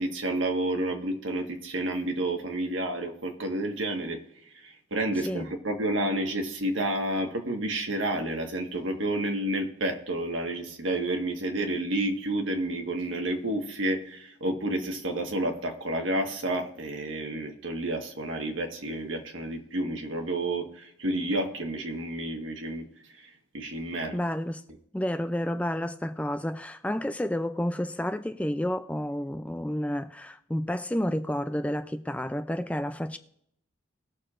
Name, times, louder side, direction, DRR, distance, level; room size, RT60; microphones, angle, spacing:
voice 1, 0.0-4.2 4.6-22.8 23.1-23.2 23.5-24.2, right 1 dB, 80° right, 1.5 m, -30 dB
voice 2, 24.1-24.6 24.9-33.2, left 1 dB, 5° left, 0.3 m, -30 dB
19.5 x 6.8 x 2.5 m
head